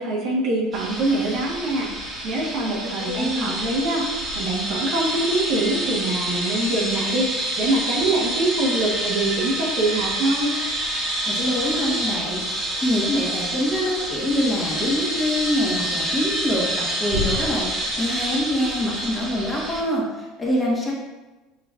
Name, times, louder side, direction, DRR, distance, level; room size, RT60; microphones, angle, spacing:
voice 1, 0.0-4.0 4.3-10.5, right 2 dB, 60° right, -3 dB, 1.1 m, -24 dB
sound 1, 0.7-19.8, right 1 dB, 30° right, 1.2 m, -27 dB
voice 2, 3.0-3.6 11.3-12.4 12.8-20.9, left 1 dB, 20° left, -4 dB, 1.3 m, -25 dB
5.8 x 3.1 x 2.4 m, 1.1 s
supercardioid pair, 100°, 0 cm